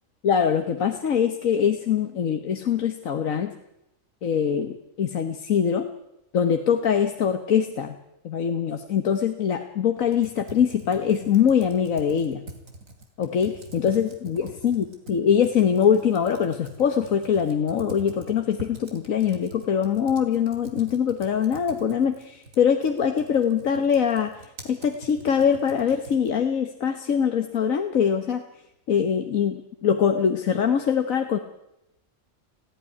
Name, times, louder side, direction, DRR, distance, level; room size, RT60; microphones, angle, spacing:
voice 1, 0.2-3.5 4.2-5.8 6.3-8.0 8.2-12.4 13.2-24.3 24.7-28.4 28.9-31.4, left 7 dB, 80° left, 7 dB, 1.6 m, -23 dB
Computer keyboard, 10.0-26.5, right 1 dB, 80° right, 3.4 m, -45 dB
19.0 x 15.0 x 9.8 m, 0.86 s
omnidirectional pair, 1.4 m